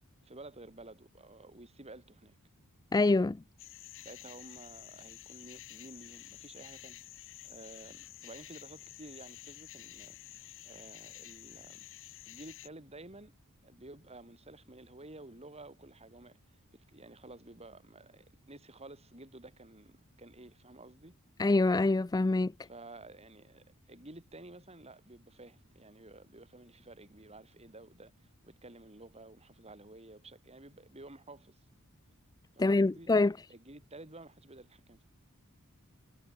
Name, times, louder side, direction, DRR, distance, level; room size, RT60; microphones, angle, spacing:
voice 1, 0.2-2.4 4.0-7.0 7.4-11.9 12.3-13.4 13.6-21.1 22.7-31.6 32.5-33.1 33.5-35.0, right 2 dB, 30° right, 4.5 m, -52 dB
voice 2, 2.9-3.4 21.4-22.5 32.6-33.3, left 2 dB, 15° left, 0.4 m, -25 dB
sound 1, 3.6-12.7, left 15 dB, 60° left, 1.7 m, -50 dB
head